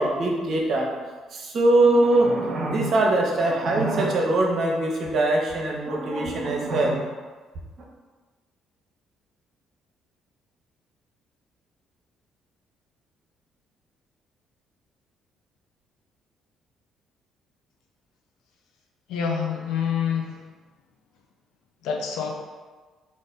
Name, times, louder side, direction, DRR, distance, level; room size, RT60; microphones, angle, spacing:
voice 1, 0.0-7.0, right 2 dB, 50° right, 0 dB, 0.7 m, -22 dB
voice 2, 19.1-20.4 21.8-22.3, left 7 dB, 65° left, 1 dB, 0.5 m, -26 dB
4.1 x 2.5 x 3.8 m, 1.4 s
figure-of-eight pair, 45°, 0 cm